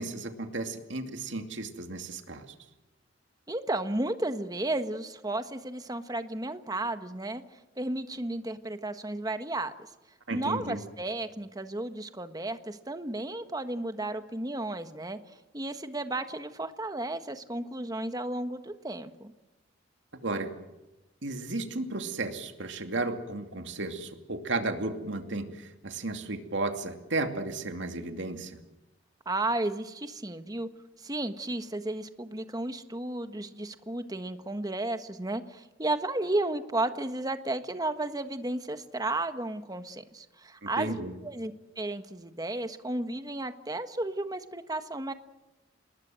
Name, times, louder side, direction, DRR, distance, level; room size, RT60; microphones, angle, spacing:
voice 1, 0.0-2.5 10.3-10.8 20.2-20.5 21.2-28.6 40.6-41.1, right 2 dB, 75° right, 6 dB, 2.6 m, -34 dB
voice 2, 3.5-7.4 7.8-9.7 10.3-15.2 15.5-19.3 29.2-30.7 31.0-45.1, right 2 dB, 20° right, 9 dB, 1.4 m, -33 dB
27.5 x 20.5 x 7.7 m, 1.0 s
head